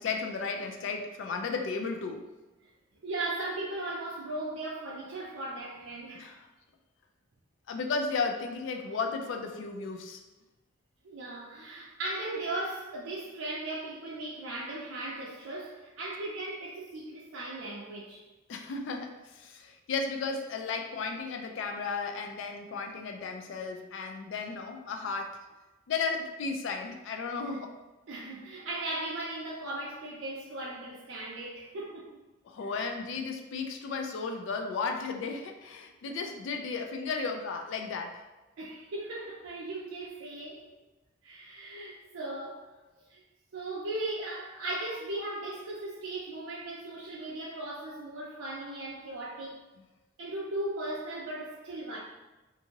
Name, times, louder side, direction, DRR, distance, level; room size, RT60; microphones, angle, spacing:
voice 1, 0.0-2.3 6.1-6.5 7.7-10.2 18.5-25.4 25.9-27.7 32.4-38.3, left 4 dB, 65° left, 4 dB, 0.3 m, -34 dB
voice 2, 3.0-6.3 11.0-18.2 28.1-32.2 36.1-36.2 38.6-40.7 41.2-42.7 43.1-43.2 43.5-49.6 50.2-52.0, right 2 dB, 80° right, -5 dB, 0.5 m, -37 dB
2.6 x 2.6 x 2.8 m, 1.1 s
head